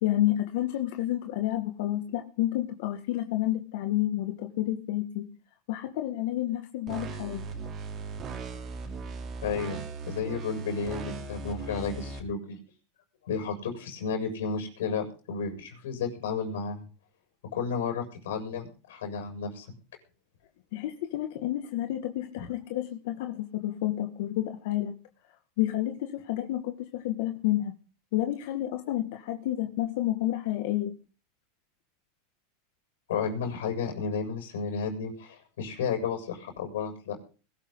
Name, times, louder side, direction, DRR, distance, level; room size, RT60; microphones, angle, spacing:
voice 1, 0.0-5.2 5.7-7.4 20.7-24.9 25.6-27.7 28.1-30.9, left 14 dB, 65° left, 2.0 m, -30 dB
sound 1, 6.9-12.2, right 4 dB, 30° right, 3.4 m, -38 dB
voice 2, 9.4-12.6 13.2-16.8 17.5-19.7 22.4-22.5 33.1-37.2, left 5 dB, 90° left, 6.7 m, -32 dB
21.5 x 13.5 x 4.0 m
supercardioid pair, 145°, 0 cm